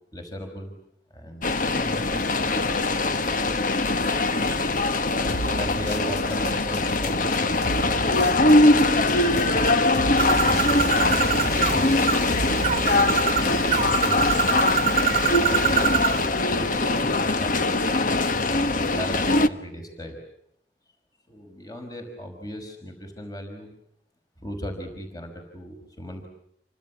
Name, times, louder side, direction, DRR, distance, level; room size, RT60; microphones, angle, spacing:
voice 1, 0.1-0.7 1.1-2.8 4.4-4.8 5.6-9.1 10.2-12.6 14.0-14.8 15.4-17.9 18.5-20.2 21.3-23.7 24.4-26.3, equal, 20° left, 4 dB, 5.5 m, -37 dB
sound 1, 1.4-19.5, left 2 dB, 50° left, 1.3 m, -22 dB
sound 2, 5.3-14.5, right 1 dB, 75° left, 3.0 m, -35 dB
Bird, 10.2-16.3, right 6 dB, 40° right, 1.3 m, -25 dB
29.0 x 25.0 x 7.2 m, 0.73 s
head